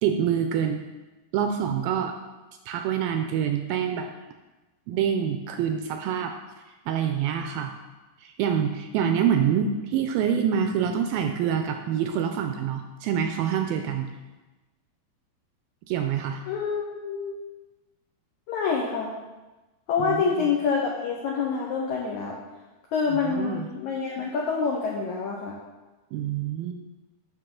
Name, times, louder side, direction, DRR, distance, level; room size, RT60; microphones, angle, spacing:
voice 1, 0.0-0.8 1.3-2.2 2.7-4.1 4.9-6.3 6.9-7.7 8.2-14.1 15.9-16.4 20.0-20.5 23.2-23.7 26.1-26.7, right 8 dB, 85° right, 5 dB, 2.2 m, -26 dB
voice 2, 16.5-17.4 18.5-19.1 19.9-22.4 22.9-25.6, left 5 dB, 85° left, -2 dB, 1.6 m, -27 dB
9.7 x 6.6 x 3.8 m, 1.1 s
omnidirectional pair, 4.6 m